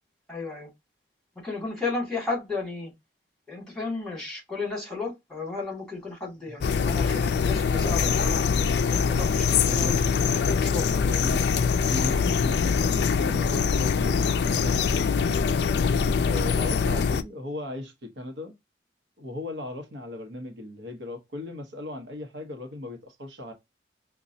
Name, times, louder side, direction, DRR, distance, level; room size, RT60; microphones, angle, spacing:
voice 1, 0.3-0.7 1.4-2.9 3.5-8.5 8.9-11.0, left 3 dB, ahead, 2.1 m, -33 dB
sound 1, 6.6-17.2, left 6 dB, 65° left, 0.3 m, -23 dB
voice 2, 11.1-15.4 16.2-18.5 19.2-23.5, left 1 dB, 80° right, 0.9 m, -37 dB
5.0 x 2.3 x 2.6 m
head